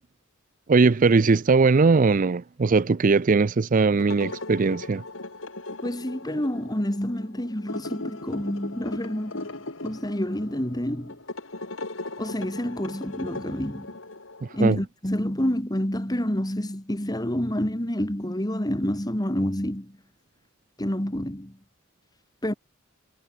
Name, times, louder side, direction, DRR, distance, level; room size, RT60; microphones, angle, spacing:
voice 1, 0.7-5.0 14.6-14.8, right 4 dB, 40° right, 0.5 m, -20 dB
sound 1, 3.9-14.7, left 2 dB, 80° left, 3.2 m, -38 dB
voice 2, 5.8-9.5 9.8-11.2 12.2-13.9 14.5-19.9 20.8-21.5 22.4-22.5, equal, 20° left, 2.3 m, -28 dB
head